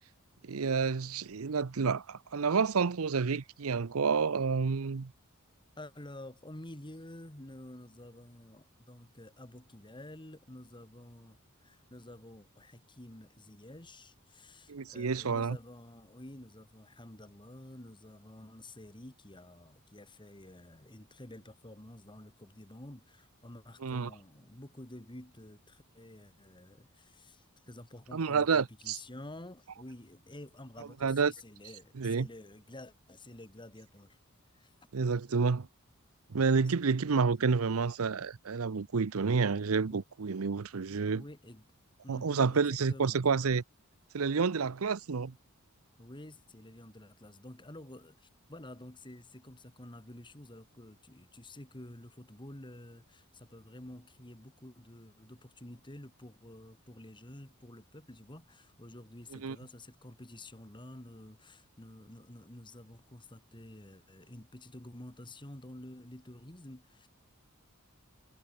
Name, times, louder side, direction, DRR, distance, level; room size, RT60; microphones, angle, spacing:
voice 1, 0.4-5.1 14.7-15.6 23.8-24.1 28.1-29.0 31.0-31.3 32.0-32.3 34.9-35.7 36.3-41.2 42.1-43.6 44.1-45.3 59.3-59.6, right 5 dB, 75° right, 0.7 m, -29 dB
voice 2, 5.8-34.2 34.5-34.7 39.9-40.0 41.1-41.6 42.0-43.2 46.0-67.1, left 1 dB, 20° left, 2.3 m, -50 dB
head